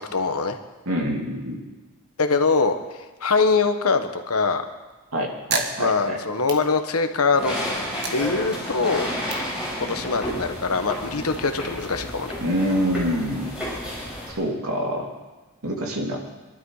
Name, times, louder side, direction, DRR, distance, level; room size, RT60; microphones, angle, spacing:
voice 1, 0.1-0.6 2.2-2.8 3.2-4.6 5.8-7.5 8.1-9.1 9.8-12.4, left 4 dB, 80° left, 7 dB, 1.2 m, -23 dB
voice 2, 0.9-1.6 5.1-6.2 12.4-13.6 14.3-15.1 15.6-16.2, equal, 75° right, 0 dB, 2.7 m, -26 dB
sound 1, 4.8-7.3 7.7-10.3, right 4 dB, 45° right, 1.6 m, -34 dB
sound 2, 7.3-14.3, equal, 5° right, 6.2 m, -31 dB
22.5 x 12.5 x 4.9 m, 1.2 s
head